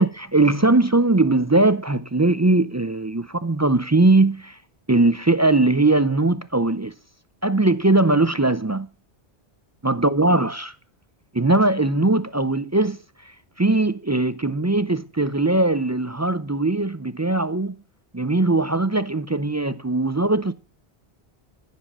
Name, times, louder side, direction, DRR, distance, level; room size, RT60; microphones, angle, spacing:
voice 1, 0.0-4.6 4.9-6.9 7.4-8.9 9.8-10.7 11.3-13.0 13.6-17.8 18.1-20.5, right 2 dB, 25° right, 0.4 m, -20 dB
14.0 x 7.4 x 7.4 m
omnidirectional pair, 1.1 m